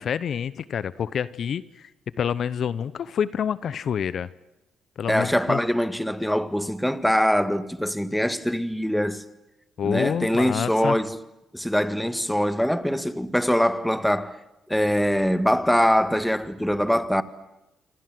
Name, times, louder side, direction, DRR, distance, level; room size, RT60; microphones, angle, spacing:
voice 1, 0.0-1.9 2.2-4.3 5.0-5.6 9.8-11.0, left 8 dB, 60° left, 0.9 m, -27 dB
voice 2, 5.1-9.2 9.8-11.2 11.5-14.4 14.7-17.2, equal, 5° left, 1.8 m, -23 dB
26.5 x 26.5 x 7.8 m
cardioid pair, 90°, 0 cm